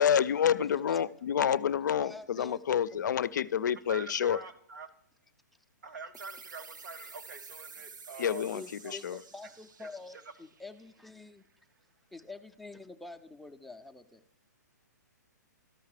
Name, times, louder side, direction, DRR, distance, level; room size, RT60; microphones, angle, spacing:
voice 1, 0.0-4.4 8.2-9.2, left 8 dB, 75° left, 18 dB, 0.4 m, -28 dB
voice 2, 0.6-1.0 2.0-2.6 2.9-3.0 8.5-11.4 12.1-14.2, left 3 dB, ahead, 5 dB, 0.4 m, -47 dB
voice 3, 3.9-4.9 5.8-8.9 9.8-10.2, right 4 dB, 75° right, 11 dB, 1.2 m, -46 dB
sound 1, 6.1-11.4, right 5 dB, 90° right, 0.8 m, -51 dB
13.0 x 5.7 x 4.8 m, 0.75 s
hypercardioid pair, 145°, 10 cm